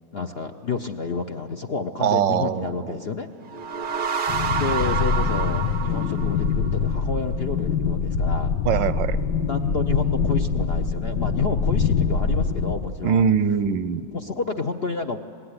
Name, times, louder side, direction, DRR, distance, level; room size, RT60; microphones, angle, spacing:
voice 1, 0.1-3.3 4.5-8.5 9.5-13.2 14.1-15.2, left 4 dB, 50° left, 6 dB, 0.7 m, -30 dB
voice 2, 2.0-3.0 8.6-9.2 13.0-14.1, right 8 dB, 90° right, 15 dB, 1.5 m, -22 dB
sound 1, 3.4-6.9, right 6 dB, 45° right, 0.6 m, -28 dB
sound 2, 4.3-12.8, left 5 dB, 75° left, 1.6 m, -24 dB
26.0 x 19.5 x 9.8 m, 2.5 s
omnidirectional pair, 1.9 m